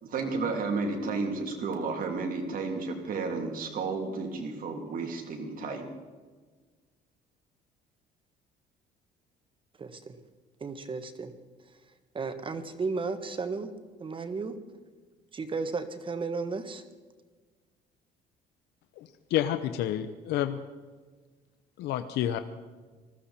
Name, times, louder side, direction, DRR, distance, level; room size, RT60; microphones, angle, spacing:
voice 1, 0.0-5.9, right 4 dB, 55° right, 3 dB, 3.0 m, -32 dB
voice 2, 9.8-10.1 10.6-11.3 12.1-13.7 14.0-14.5 15.3-16.8, right 4 dB, 30° right, 10 dB, 1.4 m, -34 dB
voice 3, 19.0-20.6 21.8-22.4, left 11 dB, 80° left, 9 dB, 0.8 m, -29 dB
20.0 x 14.0 x 4.4 m, 1.4 s
cardioid pair, 110°, 17 cm